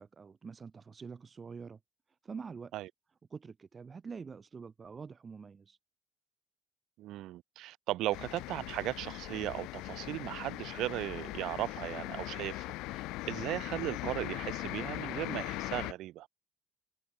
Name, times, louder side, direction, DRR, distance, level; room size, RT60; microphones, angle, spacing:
voice 1, 0.0-1.8 2.2-2.7 3.3-5.8, right 5 dB, 30° right, 1.0 m, -46 dB
voice 2, 7.0-16.3, right 15 dB, 70° right, 0.9 m, -37 dB
sound 1, 8.1-15.9, left 20 dB, 80° left, 1.0 m, -40 dB
cardioid pair, 110°, 0 cm